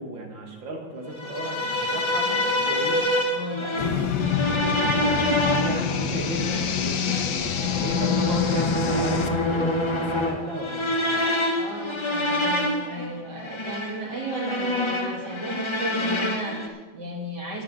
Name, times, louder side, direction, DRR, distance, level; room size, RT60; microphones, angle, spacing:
voice 1, 0.0-3.2 3.5-4.1 4.5-10.9, right 1 dB, 75° right, 2 dB, 2.7 m, -35 dB
sound 1, 1.2-16.7, left 1 dB, 20° left, 0.9 m, -26 dB
voice 2, 3.2-3.9 11.5-17.6, right 1 dB, 60° right, -1 dB, 2.7 m, -35 dB
sound 2, 3.8-9.3, left 8 dB, 65° left, 1.4 m, -26 dB
11.5 x 6.3 x 9.4 m, 1.3 s
omnidirectional pair, 2.1 m